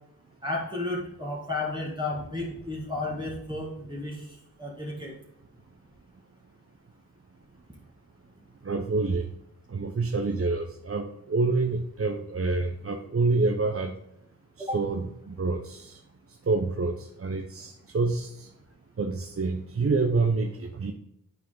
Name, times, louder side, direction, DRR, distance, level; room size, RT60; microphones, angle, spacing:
voice 1, 0.4-5.1 14.6-14.8, left 2 dB, 10° right, -4 dB, 1.8 m, -33 dB
voice 2, 8.6-9.3 9.7-14.0 14.6-16.0 16.5-18.5 19.0-20.9, right 3 dB, 40° right, 4 dB, 0.7 m, -27 dB
9.0 x 4.7 x 3.8 m, 0.83 s
cardioid pair, 55°, 37 cm